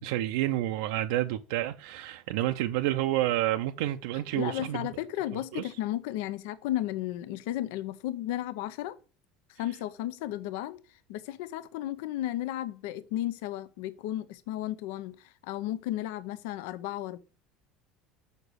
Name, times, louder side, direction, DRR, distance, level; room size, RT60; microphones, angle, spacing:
voice 1, 0.0-4.9 5.5-5.7, right 14 dB, 85° right, 0.5 m, -29 dB
voice 2, 4.3-9.0 9.5-10.8 11.1-17.2, left 13 dB, 85° left, 0.5 m, -34 dB
6.6 x 4.9 x 6.6 m
cardioid pair, 135°, 0 cm